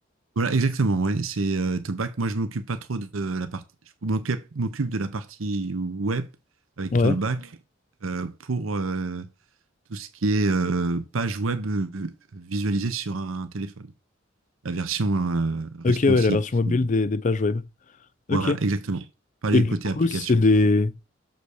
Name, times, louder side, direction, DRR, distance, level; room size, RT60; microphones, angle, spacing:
voice 1, 0.4-3.6 4.0-6.3 6.8-7.5 8.0-9.3 9.9-13.9 14.6-16.4 16.7-16.8 18.3-19.1 19.4-20.3, right 3 dB, 85° right, 0.8 m, -27 dB
voice 2, 15.8-17.6 18.3-18.6 19.5-20.9, left 3 dB, 40° left, 0.5 m, -21 dB
6.9 x 3.9 x 6.4 m
head